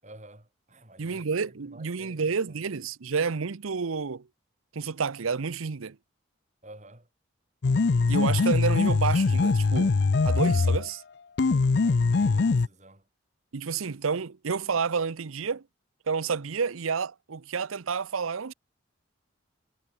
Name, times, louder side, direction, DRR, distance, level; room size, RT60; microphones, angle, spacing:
voice 1, 0.0-2.6 6.6-7.1 11.8-13.1, right 1 dB, 35° right, 5.1 m, -51 dB
voice 2, 1.0-4.3 4.7-6.0 8.1-10.0 10.2-11.0 13.5-15.6 16.1-18.5, right 5 dB, 90° right, 0.7 m, -30 dB
sound 1, 7.6-10.9 11.4-12.7, left 4 dB, 55° left, 0.5 m, -22 dB
head